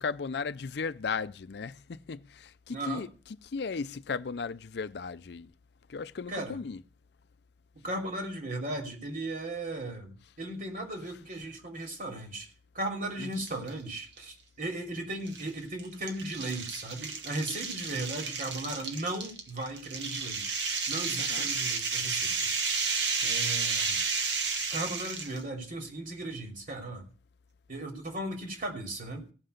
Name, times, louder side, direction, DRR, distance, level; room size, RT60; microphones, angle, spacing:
voice 1, 0.0-5.5 5.9-6.8 13.2-13.3 21.2-21.4, left 5 dB, 65° left, 0.5 m, -36 dB
voice 2, 2.7-3.1 6.3-6.6 7.7-12.5 12.7-20.6 20.9-22.3 23.2-24.0 24.7-27.1 27.7-29.3, right 2 dB, 50° right, 2.9 m, -36 dB
sound 1, 13.3-13.7 14.2-14.3 15.3-25.4, right 5 dB, 80° right, 1.7 m, -32 dB
16.5 x 5.8 x 6.6 m
head